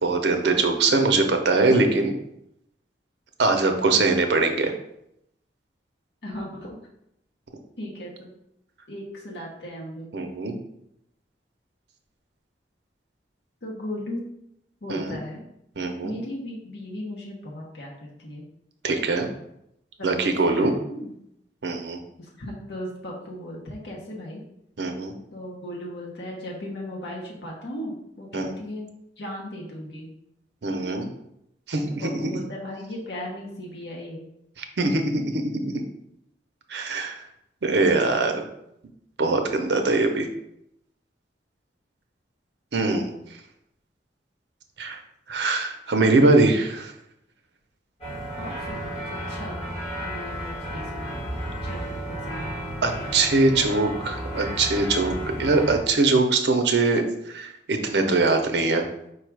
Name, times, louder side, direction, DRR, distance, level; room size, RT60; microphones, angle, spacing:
voice 1, 0.0-2.1 3.4-4.7 10.1-10.5 14.9-15.2 15.8-16.2 18.8-19.3 20.0-20.7 21.6-22.0 24.8-25.1 28.3-28.5 30.6-31.1 31.7-32.4 34.6-35.8 36.7-37.2 37.6-38.4 39.2-40.3 42.7-43.1 44.8-45.0 45.3-46.9 52.8-58.8, right 3 dB, 70° right, 5 dB, 0.6 m, -22 dB
voice 2, 0.5-0.9 6.2-6.8 7.8-8.3 8.9-10.1 13.6-14.2 14.8-15.4 16.0-17.9 18.2-18.4 20.0-21.1 22.2-24.4 25.3-28.9 29.2-30.1 30.8-30.9 32.0-34.2 48.4-49.6 50.0-51.9 52.3-52.6, left 1 dB, 70° left, -2 dB, 0.9 m, -37 dB
sound 1, 48.0-55.8, right 1 dB, 35° left, 1.6 m, -33 dB
4.8 x 2.4 x 4.6 m, 0.80 s
head